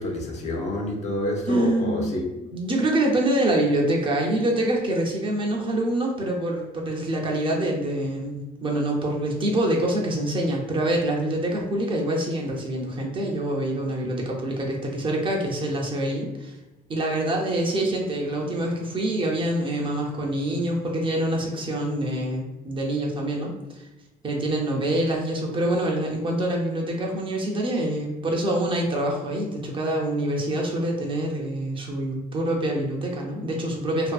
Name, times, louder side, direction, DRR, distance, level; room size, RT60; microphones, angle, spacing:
voice 1, 0.0-2.3, left 1 dB, 45° left, -1 dB, 0.7 m, -28 dB
voice 2, 1.5-2.1 2.4-16.5 16.9-23.9 24.2-34.1, right 1 dB, 30° right, -1 dB, 0.5 m, -25 dB
2.5 x 2.5 x 2.3 m, 0.99 s
cardioid pair, 110°, 17 cm